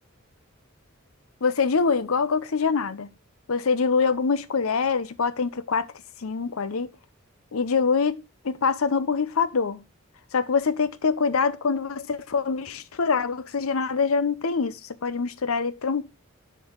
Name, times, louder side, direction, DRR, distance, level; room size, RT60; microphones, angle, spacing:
voice 1, 1.4-3.1 3.5-5.9 6.2-6.9 7.5-9.8 10.3-16.1, left 5 dB, 85° left, 0.7 m, -24 dB
6.8 x 4.7 x 6.3 m
head